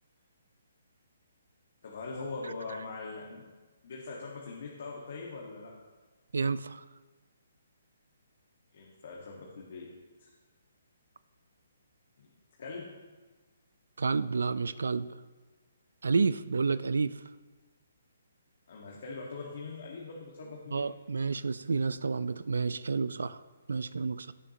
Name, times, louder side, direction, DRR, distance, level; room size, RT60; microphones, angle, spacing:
voice 1, 1.8-3.4 3.8-5.7 8.7-9.9 10.2-10.3 12.2-12.3 12.6-12.9 18.7-20.9, left 3 dB, 60° left, -2 dB, 1.8 m, -42 dB
voice 2, 6.3-6.8 14.0-15.1 16.0-17.2 20.7-23.4 23.7-24.3, right 4 dB, 80° right, 16 dB, 0.4 m, -30 dB
16.5 x 7.1 x 3.0 m, 1.3 s
hypercardioid pair, 150°, 0 cm